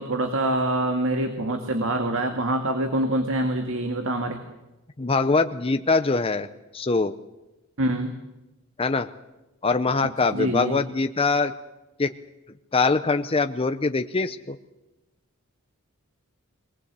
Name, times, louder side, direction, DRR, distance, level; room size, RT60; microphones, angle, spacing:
voice 1, 0.0-4.4 7.8-8.1 10.3-10.8, right 1 dB, 65° right, 5 dB, 2.0 m, -25 dB
voice 2, 5.0-6.5 6.7-7.1 8.8-9.1 9.6-11.5 12.0-12.1 12.7-14.6, left 3 dB, 25° left, 8 dB, 0.7 m, -23 dB
23.0 x 19.0 x 8.2 m, 1.0 s
head